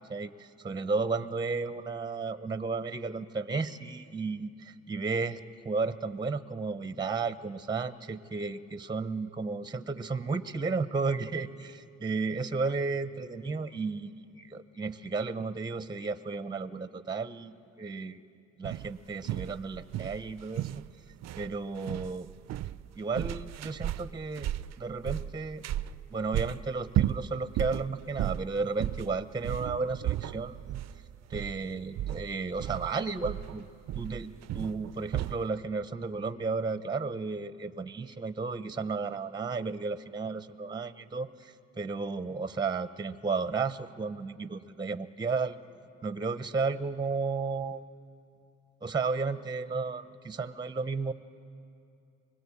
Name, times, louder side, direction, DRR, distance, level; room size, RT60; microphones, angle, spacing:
voice 1, 0.1-5.4 5.6-17.5 17.8-18.2 18.6-20.7 21.4-22.3 23.0-24.5 24.8-25.6 26.1-30.6 31.3-33.6 34.0-45.6 46.0-47.8 48.8-51.1, right 4 dB, 15° right, 12 dB, 0.8 m, -33 dB
sound 1, 18.6-35.5, right 12 dB, 60° right, 0.5 m, -35 dB
24.5 x 20.0 x 8.5 m, 2.5 s
cardioid pair, 90°, 30 cm